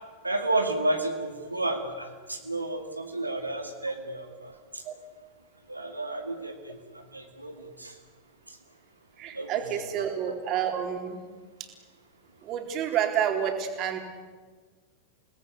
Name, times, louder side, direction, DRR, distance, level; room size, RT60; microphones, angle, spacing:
voice 1, 0.2-4.8 5.7-8.0 8.5-8.6 9.3-9.5, right 2 dB, 85° right, 4 dB, 2.2 m, -31 dB
voice 2, 9.2-11.2 12.4-14.0, right 9 dB, 35° right, 4 dB, 4.1 m, -29 dB
29.5 x 19.0 x 9.7 m, 1.5 s
figure-of-eight pair, 90°, 0 cm